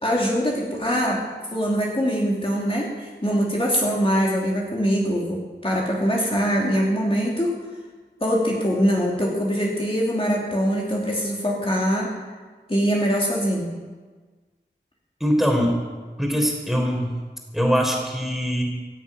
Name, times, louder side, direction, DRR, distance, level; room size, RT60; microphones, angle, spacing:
voice 1, 0.0-1.2 1.5-7.5 8.2-12.1 12.7-13.7, equal, 30° left, -4 dB, 2.8 m, -23 dB
voice 2, 15.2-15.8 16.2-17.1 17.5-18.6, equal, ahead, 1 dB, 3.7 m, -22 dB
16.0 x 8.2 x 8.8 m, 1.4 s
wide cardioid pair, 50°, 19 cm